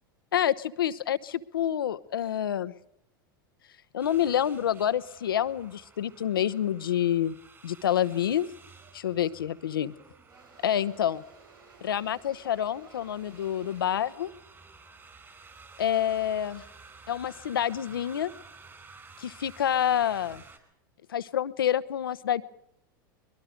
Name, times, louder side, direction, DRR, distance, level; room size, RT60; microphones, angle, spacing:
voice 1, 0.3-2.7 3.9-7.4 7.6-8.5 8.9-9.9 10.6-11.2 11.8-14.3 15.8-16.6 17.1-18.3 19.2-20.4 21.1-22.4, left 10 dB, 90° left, 14 dB, 1.0 m, -28 dB
sound 1, 4.0-20.6, right 4 dB, 20° right, 5.0 m, -53 dB
Engine / Drill, 9.9-16.0, right 4 dB, 80° right, 5.8 m, -57 dB
23.5 x 22.0 x 5.2 m, 0.79 s
hypercardioid pair, 105°, 11 cm